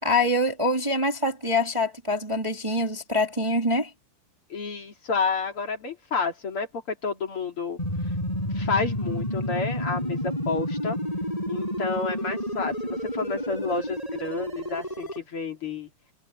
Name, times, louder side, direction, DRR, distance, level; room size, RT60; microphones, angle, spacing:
voice 1, 0.0-3.9, left 1 dB, 10° right, 2.5 m, -25 dB
voice 2, 4.5-7.8 8.5-11.0 11.5-15.9, left 4 dB, 35° left, 3.6 m, -30 dB
sound 1, 7.8-15.2, equal, 10° left, 5.7 m, -30 dB
omnidirectional pair, 4.5 m